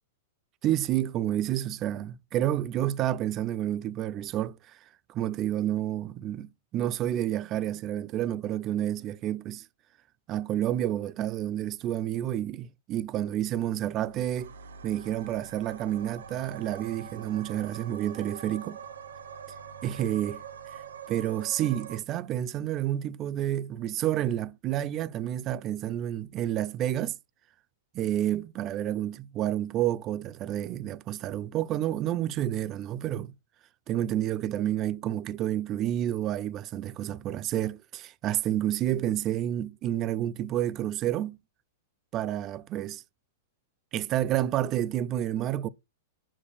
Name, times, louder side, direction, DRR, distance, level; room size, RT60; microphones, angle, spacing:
voice 1, 0.6-4.8 5.1-9.6 10.3-14.5 14.8-18.8 19.8-20.4 21.1-27.2 27.9-33.3 33.9-41.4 42.1-43.0 43.9-45.7, right 12 dB, 35° right, 0.4 m, -29 dB
sound 1, 14.0-22.0, right 7 dB, 75° right, 0.9 m, -44 dB
7.4 x 6.5 x 2.3 m
hypercardioid pair, 115°, 0 cm